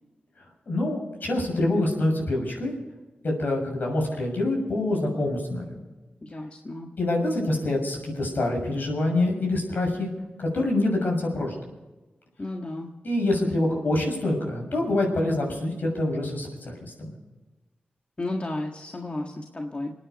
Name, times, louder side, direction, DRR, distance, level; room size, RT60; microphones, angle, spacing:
voice 1, 0.7-2.7 3.2-5.8 7.0-10.1 10.4-11.5 13.0-17.1, left 1 dB, 65° left, 0 dB, 6.7 m, -26 dB
voice 2, 6.2-6.9 12.4-12.9 18.2-19.9, left 2 dB, 35° left, 1 dB, 1.7 m, -33 dB
28.0 x 9.6 x 5.4 m, 1.2 s
cardioid pair, 65°, 3 cm